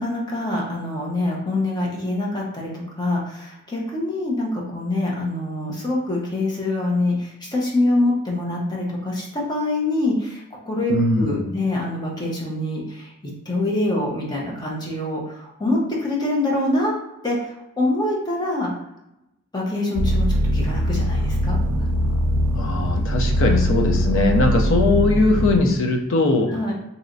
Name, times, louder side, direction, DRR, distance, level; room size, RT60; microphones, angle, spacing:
voice 1, 0.0-13.1 13.5-17.0 17.2-18.7 19.5-21.9 26.5-26.7, left 2 dB, 20° left, -3 dB, 0.7 m, -25 dB
voice 2, 10.9-11.3 22.5-26.5, left 2 dB, 60° left, 2 dB, 0.5 m, -20 dB
sound 1, 19.9-25.6, equal, 85° right, 0.4 m, -21 dB
3.1 x 2.8 x 2.6 m, 0.89 s
head